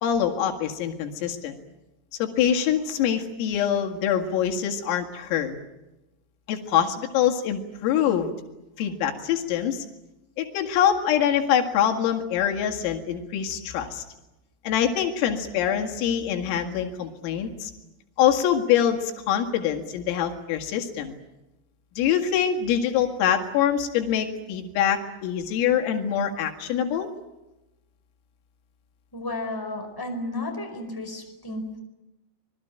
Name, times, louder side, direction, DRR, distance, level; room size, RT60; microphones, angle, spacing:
voice 1, 0.0-1.6 2.2-5.6 6.5-8.3 8.8-9.9 10.4-14.0 14.6-17.7 18.2-21.2 22.0-27.1, left 9 dB, 85° left, 3 dB, 4.7 m, -24 dB
voice 2, 29.1-31.8, left 2 dB, 5° left, 3 dB, 4.2 m, -33 dB
25.5 x 21.5 x 9.0 m, 0.99 s
omnidirectional pair, 5.9 m